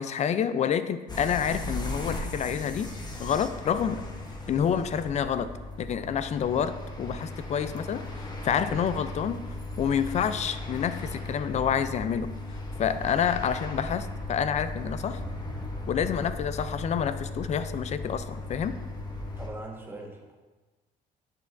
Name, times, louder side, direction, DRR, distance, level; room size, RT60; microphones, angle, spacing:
voice 1, 0.0-2.9 3.2-4.0 4.5-5.5 5.8-9.4 9.8-12.4 12.8-15.2 15.9-18.7, left 8 dB, 40° left, 12 dB, 0.4 m, -28 dB
sound 1, 1.1-19.5, left 2 dB, 25° left, 1.0 m, -37 dB
voice 2, 19.4-20.4, right 2 dB, 15° right, -1 dB, 1.3 m, -41 dB
8.2 x 6.8 x 2.5 m, 1.2 s
cardioid pair, 110°, 17 cm